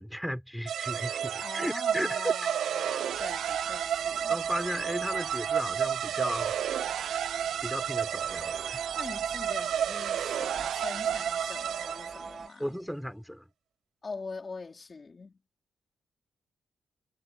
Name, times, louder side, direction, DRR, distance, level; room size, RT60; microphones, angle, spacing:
voice 1, 0.0-2.3 4.3-6.6 7.6-8.8 12.6-13.5, equal, ahead, 4.8 m, -35 dB
sound 1, 0.7-12.3, right 9 dB, 85° right, 0.8 m, -31 dB
voice 2, 1.4-4.4 9.0-12.7 14.0-15.3, left 4 dB, 30° left, 4.0 m, -43 dB
sound 2, 3.1-12.5, right 4 dB, 35° right, 2.1 m, -43 dB
cardioid pair, 125°, 0 cm